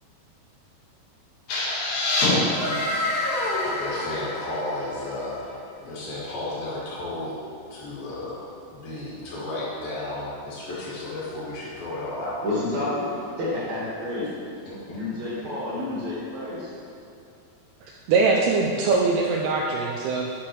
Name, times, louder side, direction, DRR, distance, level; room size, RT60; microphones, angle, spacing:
sound 1, 1.5-5.2, left 2 dB, 65° left, 2.7 m, -26 dB
voice 1, 3.8-5.5 5.8-7.3 7.7-12.4 14.6-15.0, left 2 dB, 80° left, -8 dB, 3.7 m, -33 dB
voice 2, 12.4-14.3 14.9-16.7, left 2 dB, 55° right, -7 dB, 2.7 m, -29 dB
voice 3, 18.1-20.3, right 4 dB, 80° right, 0 dB, 2.0 m, -22 dB
9.8 x 6.0 x 3.1 m, 2.6 s
omnidirectional pair, 4.1 m